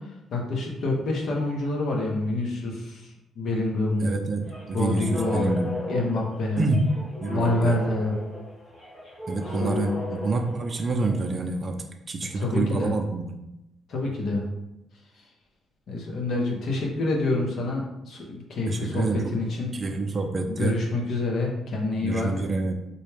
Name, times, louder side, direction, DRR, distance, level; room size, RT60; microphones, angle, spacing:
voice 1, 0.3-3.1 3.4-4.1 4.7-5.5 5.9-6.6 7.3-8.2 9.5-10.0 12.3-12.9 13.9-14.4 15.9-19.7 20.5-22.4, left 2 dB, 65° left, 0 dB, 0.9 m, -27 dB
voice 2, 4.0-5.7 6.6-6.9 7.2-7.8 9.3-11.7 12.1-13.4 18.7-19.3 19.7-20.7 22.0-22.7, right 3 dB, 35° right, 4 dB, 0.5 m, -27 dB
sound 1, 4.4-11.3, left 2 dB, 25° left, 1.5 m, -36 dB
4.1 x 2.3 x 3.3 m, 0.91 s
cardioid pair, 90°, 0 cm